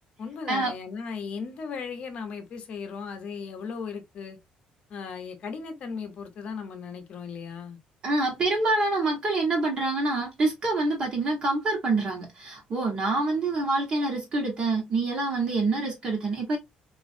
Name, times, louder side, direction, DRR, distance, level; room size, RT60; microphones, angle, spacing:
voice 1, 0.2-4.4 4.9-7.8, left 5 dB, 45° left, 0.7 m, -36 dB
voice 2, 8.0-16.6, right 2 dB, 35° right, 1.2 m, -26 dB
3.1 x 2.5 x 2.4 m
cardioid pair, 160°, 3 cm